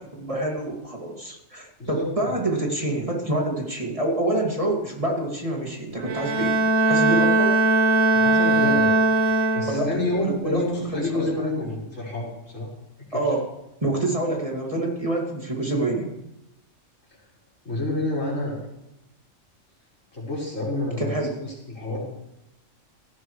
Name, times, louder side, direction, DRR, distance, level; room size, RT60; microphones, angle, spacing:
voice 1, 0.0-6.6 6.9-7.5 9.7-11.7 13.1-13.6 13.8-16.1 21.0-21.3, right 2 dB, 25° right, -1 dB, 2.5 m, -27 dB
voice 2, 1.8-2.4 8.1-8.9 9.5-12.7 13.1-13.2 17.6-18.7 20.1-22.0, left 2 dB, 75° left, -6 dB, 5.6 m, -29 dB
Bowed string instrument, 6.0-10.1, right 2 dB, 60° right, 1.6 m, -20 dB
17.0 x 15.0 x 3.3 m, 0.87 s
omnidirectional pair, 1.3 m